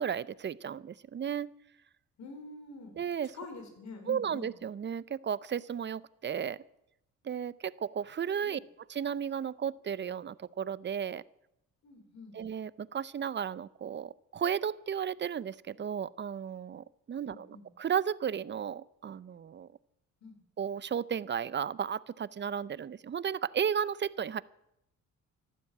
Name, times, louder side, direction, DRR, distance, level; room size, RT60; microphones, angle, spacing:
voice 1, 0.0-1.5 3.0-3.3 4.1-6.6 7.2-8.6 8.9-11.2 12.3-19.7 20.6-24.4, right 8 dB, 35° right, 19 dB, 0.6 m, -34 dB
voice 2, 2.2-3.0 3.3-4.5 8.4-8.6 11.8-12.4 17.2-17.7 20.2-20.4, left 3 dB, 65° left, 5 dB, 4.9 m, -46 dB
14.0 x 12.0 x 8.5 m, 0.81 s
cardioid pair, 90°, 30 cm